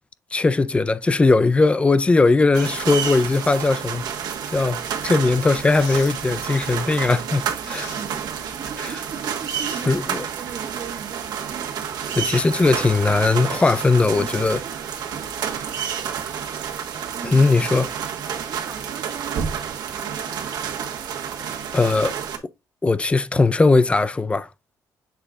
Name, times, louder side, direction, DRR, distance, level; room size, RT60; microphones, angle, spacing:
voice 1, 0.3-4.0 4.5-7.9 8.8-8.9 9.9-10.3 12.1-14.6 17.2-17.9 21.7-22.2 22.8-24.5, left 3 dB, 15° left, 0.4 m, -19 dB
sound 1, 2.5-22.4, right 8 dB, 85° right, 1.3 m, -30 dB
sound 2, 5.0-5.1 5.8-6.2 7.6-8.1 9.4-10.2, left 7 dB, 80° left, 1.5 m, -42 dB
voice 2, 7.6-11.7 13.5-13.7 14.1-14.7 17.1-17.7 18.3-21.0, right 7 dB, 50° right, 1.0 m, -39 dB
7.3 x 3.6 x 3.6 m
cardioid pair, 120°, 7 cm